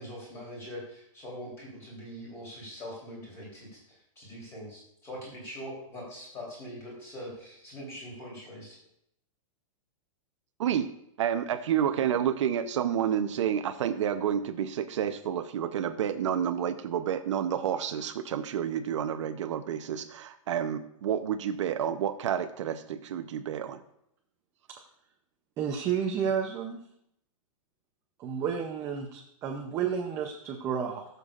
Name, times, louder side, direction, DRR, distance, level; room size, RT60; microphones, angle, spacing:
voice 1, 0.0-3.8 4.2-8.8, equal, 15° left, -4 dB, 3.2 m, -42 dB
voice 2, 11.2-23.8, right 9 dB, 60° right, 8 dB, 0.7 m, -29 dB
voice 3, 25.6-26.8 28.2-31.1, right 7 dB, 15° right, 2 dB, 0.5 m, -31 dB
19.5 x 6.8 x 2.4 m, 0.75 s
supercardioid pair, 175°, 18 cm